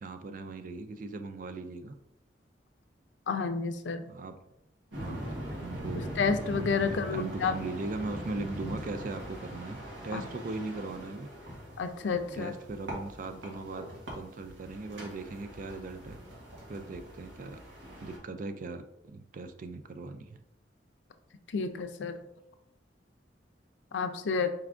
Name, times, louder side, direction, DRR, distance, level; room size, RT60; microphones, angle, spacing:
voice 1, 0.0-1.9 4.1-4.3 5.0-6.1 6.8-11.3 12.3-16.2 16.7-17.6 18.0-20.3, right 3 dB, 45° right, 9 dB, 0.4 m, -39 dB
voice 2, 3.3-4.1 6.2-7.5 10.1-10.2 11.8-12.5 21.5-22.2 23.9-24.5, left 5 dB, 80° left, 8 dB, 0.4 m, -30 dB
sound 1, 4.9-18.2, equal, 85° right, 1.2 m, -41 dB
4.5 x 3.4 x 2.5 m, 0.81 s
head